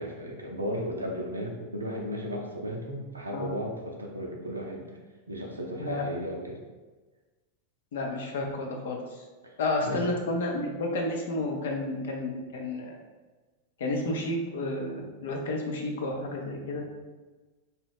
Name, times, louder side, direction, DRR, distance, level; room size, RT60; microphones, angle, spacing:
voice 1, 0.0-5.0 5.3-6.6 9.4-9.5 9.8-10.0, equal, 80° right, 0 dB, 0.5 m, -35 dB
voice 2, 7.9-9.3 9.6-13.0 13.8-16.8, left 2 dB, 60° left, 1 dB, 0.5 m, -31 dB
2.8 x 2.2 x 3.4 m, 1.3 s
figure-of-eight pair, 90°, 0 cm